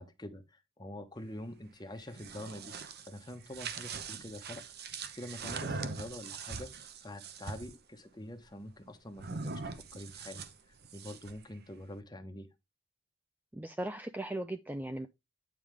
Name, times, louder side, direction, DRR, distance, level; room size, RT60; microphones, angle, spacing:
voice 1, 0.0-12.5, left 1 dB, 20° left, 1.1 m, -46 dB
sound 1, 2.0-7.8 9.2-11.4, right 4 dB, 50° right, 0.8 m, -42 dB
voice 2, 13.5-15.1, right 1 dB, 10° right, 0.4 m, -38 dB
9.3 x 5.0 x 3.3 m
head